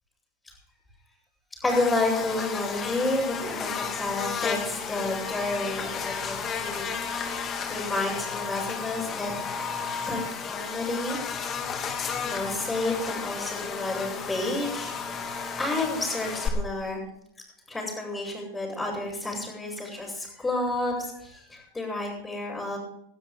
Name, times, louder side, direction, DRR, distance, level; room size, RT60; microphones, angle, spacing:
voice 1, 1.6-6.9 7.5-9.7 10.1-11.2 12.2-15.2 15.6-17.0 17.7-22.8, left 2 dB, 10° left, -7 dB, 7.0 m, -30 dB
Buzz, 1.7-16.5, left 6 dB, 30° left, 2.7 m, -33 dB
20.0 x 12.5 x 3.8 m, 0.75 s
hypercardioid pair, 100°, 0 cm